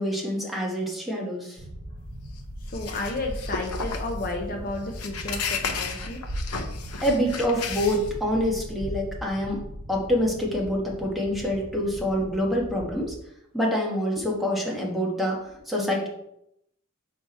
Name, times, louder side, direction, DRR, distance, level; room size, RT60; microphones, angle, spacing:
voice 1, 0.0-1.6 7.0-9.6 9.9-13.1 13.5-16.1, equal, ahead, -3 dB, 1.4 m, -26 dB
sound 1, 1.6-13.1, equal, 40° right, 1.1 m, -39 dB
sound 2, 2.0-8.5, left 5 dB, 75° left, 0.7 m, -34 dB
voice 2, 2.7-6.2, left 2 dB, 40° left, 2 dB, 0.7 m, -32 dB
6.0 x 4.7 x 4.2 m, 0.78 s
head